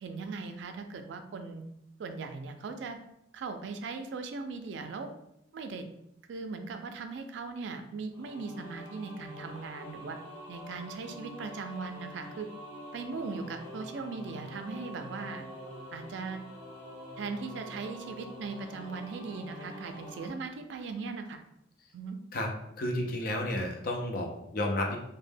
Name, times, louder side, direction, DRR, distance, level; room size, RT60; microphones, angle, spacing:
voice 1, 0.0-1.6 2.0-3.0 3.3-5.1 5.5-5.8 6.3-10.2 10.5-12.5 12.9-15.4 15.9-16.4 17.2-21.4 21.9-22.2, right 4 dB, 75° right, 6 dB, 0.3 m, -39 dB
sound 1, 8.1-20.3, left 1 dB, 75° left, 1.0 m, -46 dB
voice 2, 22.8-25.0, left 1 dB, 50° left, 1 dB, 0.4 m, -31 dB
2.1 x 2.1 x 3.3 m, 0.79 s
head